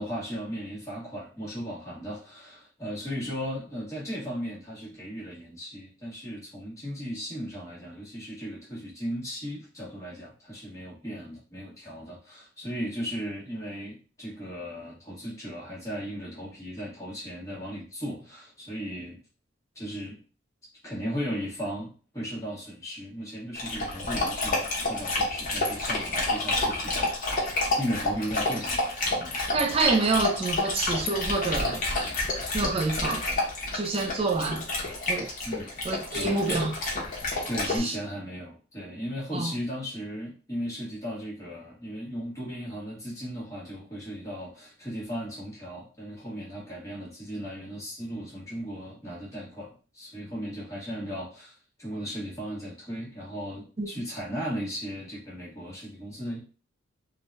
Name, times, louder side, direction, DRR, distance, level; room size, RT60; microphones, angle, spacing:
voice 1, 0.0-19.2 19.7-20.2 20.8-27.1 27.8-29.4 35.4-35.7 36.1-36.5 37.5-56.4, equal, 15° left, 1.2 m, -36 dB
Dog, 23.6-37.8, left 2 dB, 45° left, 0.9 m, -29 dB
voice 2, 29.5-31.8 32.5-33.2 33.7-34.7 35.1-35.3 35.8-36.8 37.7-37.9 39.3-39.5 53.8-53.9, right 3 dB, 30° right, 0.3 m, -27 dB
3.5 x 2.2 x 2.6 m
head